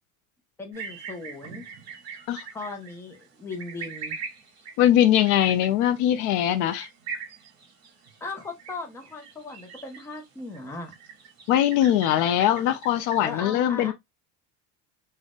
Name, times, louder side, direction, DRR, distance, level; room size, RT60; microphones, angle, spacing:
voice 1, 0.6-1.6 2.5-4.2 8.2-10.9 13.2-13.9, left 3 dB, 5° left, 0.5 m, -37 dB
sound 1, 0.7-13.4, right 5 dB, 45° right, 1.9 m, -42 dB
voice 2, 4.8-6.9 11.5-13.9, left 11 dB, 55° left, 0.5 m, -21 dB
4.0 x 2.1 x 3.5 m
cardioid pair, 175°, 37 cm